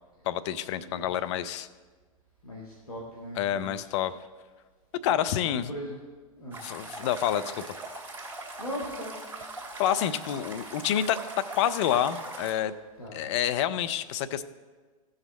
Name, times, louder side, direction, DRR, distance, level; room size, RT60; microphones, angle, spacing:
voice 1, 0.2-1.7 3.4-4.1 5.0-5.7 6.6-7.6 9.8-11.2 11.5-12.7 13.1-14.4, left 10 dB, 50° left, 13 dB, 0.6 m, -28 dB
voice 2, 2.4-3.9 5.0-5.1 5.7-6.0 6.4-6.6 8.6-9.2 13.0-13.2, equal, 90° left, -3 dB, 2.0 m, -39 dB
sound 1, 6.5-12.5, right 2 dB, 10° right, 2.7 m, -41 dB
15.5 x 6.5 x 4.1 m, 1.4 s
hypercardioid pair, 110°, 18 cm